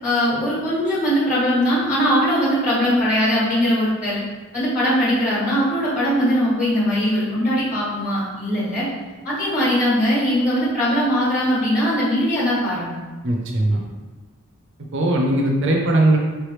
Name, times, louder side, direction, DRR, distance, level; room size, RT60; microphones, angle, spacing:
voice 1, 0.0-4.2 4.5-8.9 9.2-12.9, equal, 30° left, -7 dB, 1.3 m, -20 dB
voice 2, 13.2-13.8 14.9-16.2, right 1 dB, 55° right, -1 dB, 0.6 m, -19 dB
4.8 x 3.3 x 3.1 m, 1.3 s
head